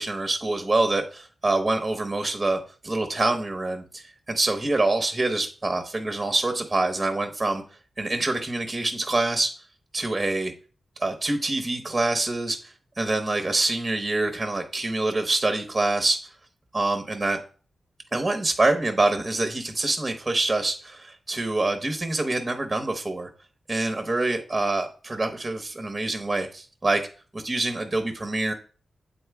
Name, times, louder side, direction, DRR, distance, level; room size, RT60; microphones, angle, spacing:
voice 1, 0.0-7.6 8.0-9.5 9.9-10.5 11.0-12.7 13.0-16.3 16.7-17.4 18.1-23.3 23.7-27.0 27.3-28.5, right 2 dB, 25° right, 5 dB, 1.0 m, -25 dB
7.8 x 4.1 x 3.5 m, 0.39 s
cardioid pair, 70°, 0 cm